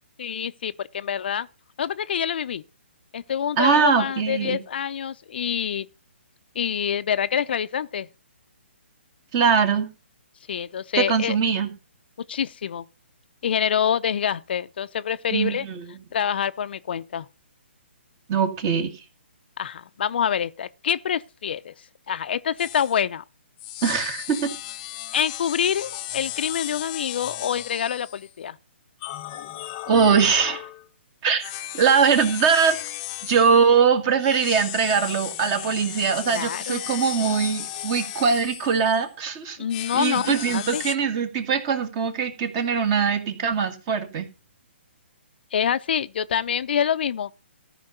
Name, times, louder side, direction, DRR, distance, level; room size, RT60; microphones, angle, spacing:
voice 1, 0.2-1.5 1.8-2.6 3.1-5.9 6.6-8.1 10.5-11.4 12.3-12.9 13.4-15.6 16.1-17.3 19.6-21.7 22.1-23.2 25.1-28.6 36.3-36.8 39.6-40.8 45.5-47.3, left 8 dB, 55° left, 0.6 m, -26 dB
voice 2, 3.6-4.6 9.3-9.9 11.0-11.7 15.3-15.8 18.3-18.9 23.8-24.5 29.9-30.6 31.2-32.8 33.2-39.6 39.9-44.3, right 6 dB, 30° right, 2.0 m, -21 dB
sound 1, 22.6-23.0 23.6-28.3 29.0-30.8 31.4-33.6 34.2-39.1 39.7-40.9, left 14 dB, 25° left, 0.8 m, -35 dB
14.0 x 5.2 x 6.6 m
hypercardioid pair, 150°, 7 cm